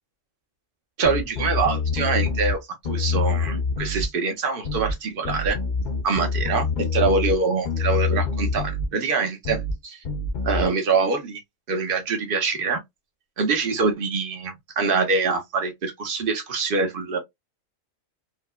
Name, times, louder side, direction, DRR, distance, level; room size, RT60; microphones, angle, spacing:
sound 1, 1.0-2.6 2.8-4.1 4.6-5.0 5.2-7.4 7.6-8.9 9.4-9.8 10.0-10.6, left 4 dB, 45° left, 0.7 m, -25 dB
voice 1, 1.0-5.6 6.0-10.0 10.4-11.4 11.7-12.8 13.4-17.2, right 4 dB, 45° right, 1.0 m, -24 dB
4.5 x 2.2 x 2.2 m
omnidirectional pair, 1.4 m